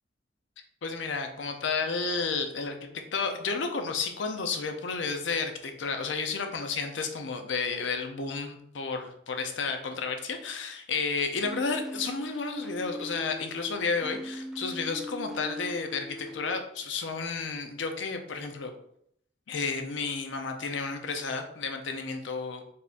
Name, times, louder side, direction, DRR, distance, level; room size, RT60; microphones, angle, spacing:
voice 1, 0.8-18.7 19.5-22.6, left 4 dB, 75° left, 5 dB, 0.6 m, -32 dB
sound 1, 11.4-16.6, left 1 dB, ahead, 0.3 m, -40 dB
4.1 x 3.5 x 2.5 m, 0.71 s
head